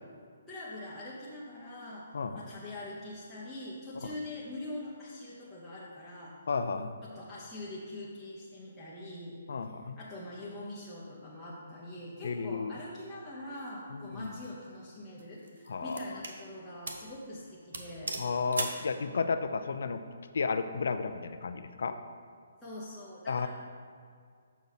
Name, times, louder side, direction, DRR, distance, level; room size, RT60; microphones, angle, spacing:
voice 1, 0.4-2.1 2.3-6.3 7.0-9.4 10.0-18.1 22.6-23.5, left 1 dB, 5° left, -11 dB, 0.7 m, -43 dB
voice 2, 6.5-6.9 9.5-10.0 12.2-12.8 13.9-14.3 15.7-16.0 18.2-20.0 20.3-22.0 23.3-23.5, left 5 dB, 65° left, 9 dB, 0.5 m, -32 dB
sound 1, 14.2-14.5 15.2-16.4 16.9-17.1 17.4-17.5 17.7-18.9, right 3 dB, 70° right, 0.9 m, -38 dB
6.8 x 6.1 x 4.1 m, 2.1 s
hypercardioid pair, 170°, 0 cm